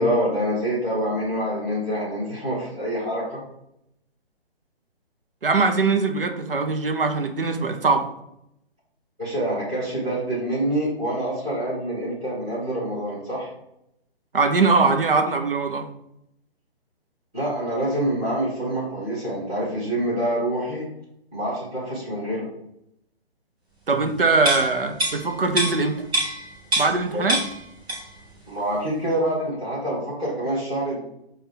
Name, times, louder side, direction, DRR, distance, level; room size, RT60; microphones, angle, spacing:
voice 1, 0.0-3.4 9.2-13.5 17.3-20.9 21.3-22.4 27.1-27.2 28.5-31.0, right 1 dB, 5° right, -13 dB, 0.4 m, -26 dB
voice 2, 5.4-8.1 14.3-15.9 23.9-26.0 26.8-27.4, right 4 dB, 60° right, 6 dB, 0.6 m, -21 dB
sound 1, 24.4-27.0 27.3-28.2 28.6-28.7, right 1 dB, 25° right, 1.6 m, -26 dB
6.3 x 2.3 x 3.5 m, 0.79 s
figure-of-eight pair, 140°, 31 cm